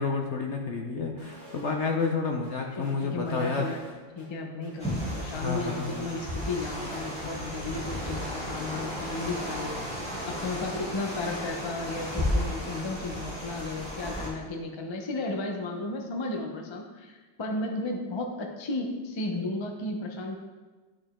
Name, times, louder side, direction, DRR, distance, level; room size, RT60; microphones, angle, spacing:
voice 1, 0.0-3.7 5.3-6.1, left 4 dB, 55° left, 1 dB, 0.8 m, -30 dB
sound 1, 1.2-1.7 2.0-2.1 2.4-4.3 4.6-6.1 6.4-6.5 6.8-8.6 9.0-9.7, right 1 dB, 45° right, 2.7 m, -49 dB
voice 2, 2.8-3.8 4.2-9.8 10.3-20.4, left 2 dB, 40° left, 2 dB, 0.3 m, -34 dB
sound 2, 4.8-14.3, equal, 5° left, 2.8 m, -34 dB
11.0 x 5.1 x 3.6 m, 1.3 s
omnidirectional pair, 2.0 m